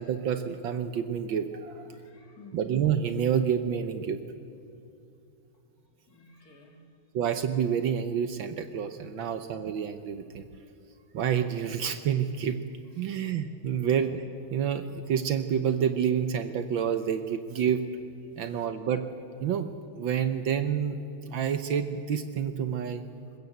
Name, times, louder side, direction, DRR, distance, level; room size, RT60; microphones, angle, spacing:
voice 1, 0.0-2.0 2.5-4.2 7.1-10.5 11.1-12.6 13.0-14.2 14.5-17.8 18.4-19.1 19.4-21.0 21.2-23.0, right 8 dB, 65° right, 9 dB, 1.5 m, -28 dB
voice 2, 1.9-2.6 6.1-6.8 9.2-9.4 13.1-13.2 13.7-13.9, left 2 dB, 40° left, 2 dB, 2.8 m, -54 dB
22.0 x 20.5 x 8.0 m, 2.6 s
omnidirectional pair, 2.4 m